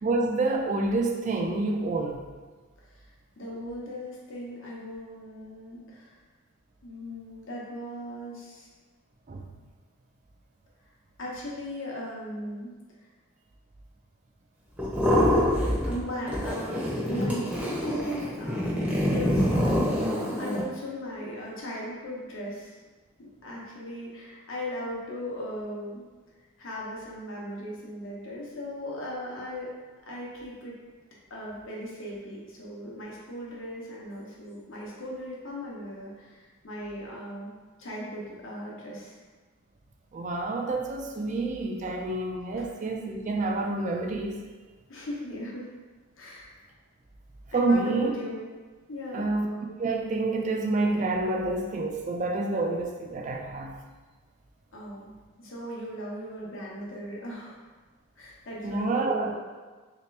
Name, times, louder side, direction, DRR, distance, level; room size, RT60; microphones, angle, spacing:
voice 1, 0.0-2.3 9.3-9.5 40.1-44.4 47.5-48.1 49.1-49.5 49.8-53.8 58.6-59.3, right 2 dB, 35° right, 2 dB, 0.3 m, -28 dB
voice 2, 3.4-6.1 6.8-8.7 11.2-12.7 15.9-22.8 23.2-26.0 26.6-29.7 30.1-30.8 31.3-39.2 42.6-42.7 44.9-45.7 46.2-46.5 47.5-48.4 48.9-49.3 54.7-57.6 58.2-59.4, equal, 65° left, -4 dB, 0.9 m, -38 dB
sound 1, 14.8-16.0 16.3-20.6, equal, 5° right, 0.7 m, -26 dB
3.3 x 2.8 x 3.2 m, 1.4 s
head